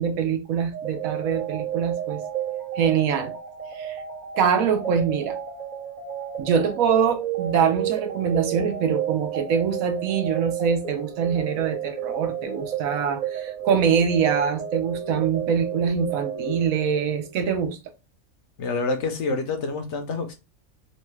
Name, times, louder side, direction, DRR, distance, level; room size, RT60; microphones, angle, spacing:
voice 1, 0.0-2.2 2.8-3.3 3.7-4.0 4.4-5.4 6.4-17.8, right 7 dB, 75° right, 1.0 m, -24 dB
sound 1, 0.7-17.3, right 9 dB, 40° right, 0.7 m, -32 dB
voice 2, 18.6-20.3, left 3 dB, 65° left, 0.8 m, -27 dB
3.0 x 2.3 x 3.0 m
omnidirectional pair, 1.5 m